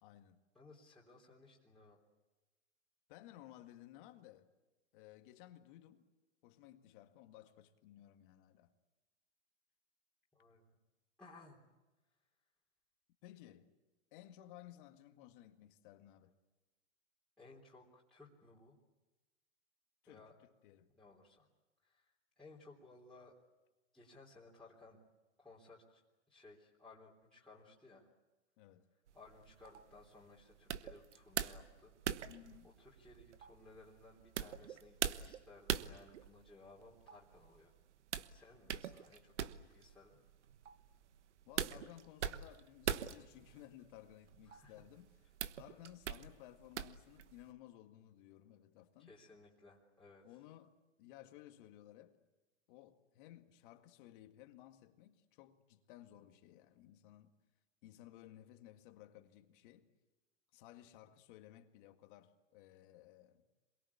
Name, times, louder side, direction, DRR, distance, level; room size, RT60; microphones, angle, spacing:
voice 1, 0.0-0.4 3.1-4.5 4.9-6.1 6.4-8.7 13.2-13.7 14.1-16.3 20.0-20.9 28.6-28.8 32.2-32.7 41.5-45.1 45.6-49.1 50.2-52.2 52.7-57.4 57.8-59.9 60.5-63.5, left 13 dB, 45° left, 2.0 m, -58 dB
voice 2, 0.6-2.0 10.3-10.8 11.2-11.6 17.4-18.8 20.1-20.4 21.0-21.5 21.8-23.3 23.9-25.0 25.4-26.0 26.3-28.1 29.1-31.9 32.8-37.7 38.3-40.2 44.5-44.7 49.0-50.2, left 3 dB, ahead, 3.6 m, -60 dB
sound 1, 29.1-47.5, right 9 dB, 75° right, 1.3 m, -44 dB
27.5 x 22.5 x 8.5 m
hypercardioid pair, 130°, 36 cm